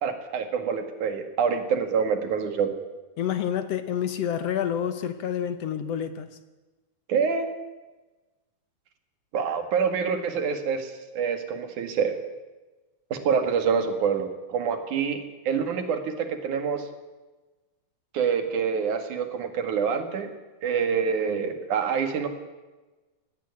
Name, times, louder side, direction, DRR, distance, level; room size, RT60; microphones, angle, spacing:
voice 1, 0.0-2.7 7.1-7.5 9.3-12.2 13.1-16.9 18.1-20.3 20.6-22.3, right 6 dB, 80° right, 7 dB, 3.4 m, -26 dB
voice 2, 3.2-6.4, left 9 dB, 65° left, 11 dB, 1.9 m, -28 dB
18.0 x 17.0 x 9.7 m, 1.2 s
omnidirectional pair, 3.4 m